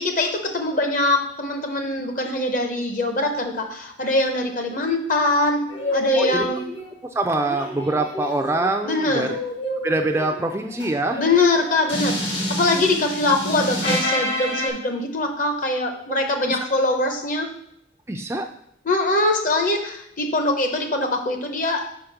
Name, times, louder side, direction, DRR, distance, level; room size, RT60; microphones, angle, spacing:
voice 1, 0.0-5.7 5.9-6.6 8.8-9.4 11.2-17.5 18.8-21.9, left 2 dB, 45° left, 5 dB, 0.9 m, -23 dB
sound 1, 5.7-6.9 7.3-14.7, equal, 75° left, 2.5 m, -28 dB
voice 2, 6.1-6.5 7.2-9.4 9.8-11.2 16.5-16.6 18.1-18.5, right 2 dB, 15° right, 4 dB, 0.3 m, -24 dB
5.1 x 4.9 x 5.9 m, 0.72 s
head